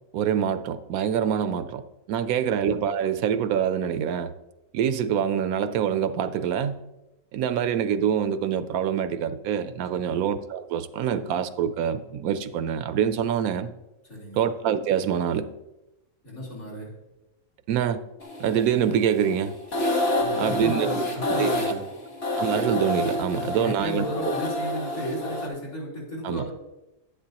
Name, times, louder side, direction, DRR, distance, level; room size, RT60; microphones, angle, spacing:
voice 1, 0.1-1.8 2.1-4.3 4.7-6.8 7.3-13.7 14.4-15.5 17.7-18.0 18.4-19.6 20.4-21.0 21.4-21.6 22.4-24.0 26.2-26.4, right 8 dB, 80° right, 1.0 m, -25 dB
voice 2, 2.2-2.6 9.9-10.2 14.1-14.4 16.2-17.0 20.1-21.8 23.3-26.5, equal, 70° left, 4.2 m, -34 dB
sound 1, 18.2-25.5, left 1 dB, 45° left, 1.5 m, -28 dB
10.5 x 9.8 x 2.9 m
omnidirectional pair, 1.5 m